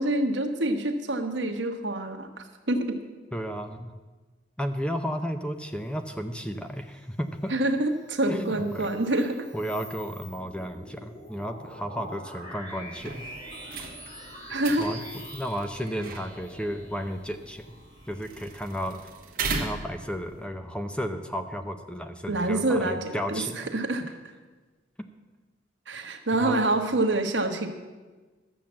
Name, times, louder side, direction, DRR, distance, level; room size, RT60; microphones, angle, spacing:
voice 1, 0.0-3.0 7.5-9.5 14.5-14.9 22.3-24.1 25.9-27.7, right 2 dB, 70° right, 5 dB, 1.3 m, -26 dB
voice 2, 3.3-3.9 4.6-7.5 8.3-8.9 9.5-13.2 13.8-13.9 14.8-15.0 15.3-17.6 18.1-19.0 19.5-23.7 26.4-26.6, equal, 5° left, 7 dB, 0.6 m, -33 dB
sound 1, 8.0-18.9, equal, 40° left, 3.9 m, -46 dB
sound 2, 13.0-20.5, right 4 dB, 50° right, 1.4 m, -38 dB
12.5 x 7.3 x 7.5 m, 1.3 s
head